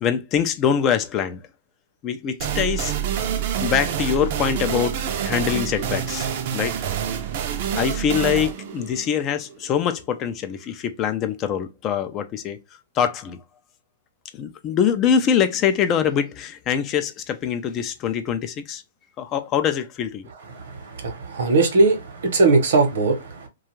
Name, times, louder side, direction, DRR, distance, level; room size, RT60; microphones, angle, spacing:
voice 1, 0.0-1.4 2.0-2.9 3.6-6.7 7.8-12.6 13.0-13.4 14.3-18.8 19.2-20.3, left 8 dB, 30° left, 0.4 m, -24 dB
sound 1, 2.4-9.9, right 9 dB, 55° right, 0.5 m, -27 dB
voice 2, 21.0-23.5, right 3 dB, 75° right, 0.9 m, -19 dB
2.4 x 2.3 x 3.0 m
hypercardioid pair, 135°, 0 cm